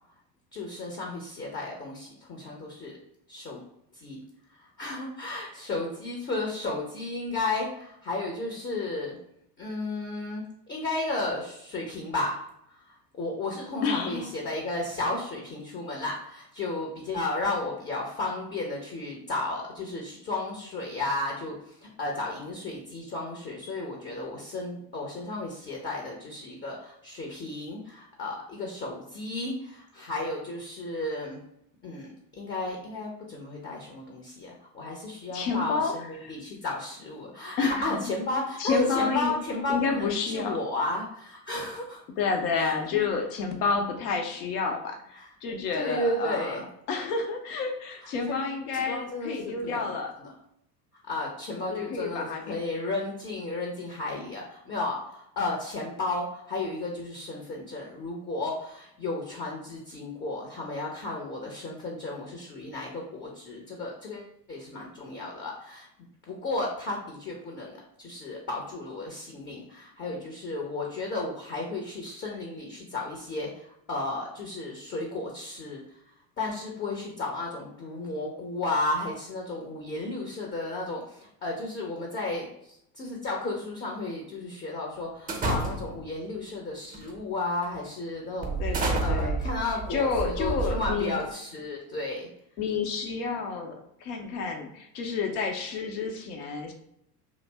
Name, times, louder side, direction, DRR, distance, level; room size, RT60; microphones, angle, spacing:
voice 1, 0.5-3.0 3.3-3.6 3.9-4.2 4.5-9.2 9.6-12.4 12.7-21.6 22.0-31.4 31.8-42.0 42.5-42.8 45.2-45.3 45.7-46.6 48.3-48.4 48.9-50.3 51.1-65.9 66.3-75.8 76.4-92.3, left 2 dB, 25° left, -1 dB, 0.6 m, -33 dB
voice 2, 13.8-14.3 35.3-36.3 37.6-38.1 38.6-39.3 39.7-40.6 42.2-46.6 46.9-50.1 51.7-52.6 88.6-89.5 89.9-91.2 92.6-96.7, left 5 dB, 70° left, 3 dB, 0.8 m, -30 dB
sound 1, 85.3-86.1 86.9-87.2 87.6-87.8 88.4-91.3, right 3 dB, 20° right, 0.6 m, -30 dB
2.6 x 2.0 x 3.3 m, 0.76 s
hypercardioid pair, 75°, 48 cm